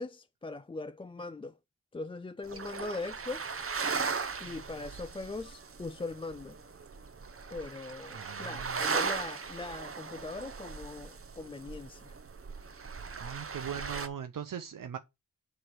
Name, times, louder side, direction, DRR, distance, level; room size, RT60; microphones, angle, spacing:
voice 1, 0.0-1.6 1.9-3.6 4.4-6.6 7.5-12.2, left 3 dB, 15° left, 0.3 m, -41 dB
sound 1, 2.4-14.1, right 5 dB, 45° right, 0.9 m, -38 dB
voice 2, 8.1-8.9 13.2-15.0, right 8 dB, 80° right, 0.7 m, -40 dB
7.7 x 3.3 x 6.1 m
cardioid pair, 65°, 32 cm